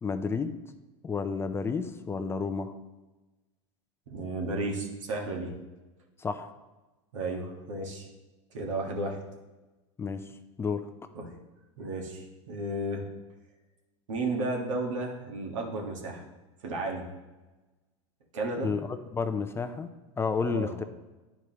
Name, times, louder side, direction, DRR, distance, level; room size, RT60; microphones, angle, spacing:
voice 1, 0.0-0.5 1.0-2.7 6.2-6.5 10.0-10.3 10.6-10.9 18.6-19.9 20.2-20.8, left 5 dB, 15° left, 9 dB, 0.4 m, -31 dB
voice 2, 4.1-5.5 7.1-8.1 8.5-9.2 11.1-11.3 11.8-13.1 14.1-16.2 16.6-17.1 18.3-18.7 20.4-20.7, right 2 dB, 85° right, 1 dB, 1.6 m, -33 dB
10.0 x 4.8 x 3.0 m, 1.1 s
hypercardioid pair, 110°, 16 cm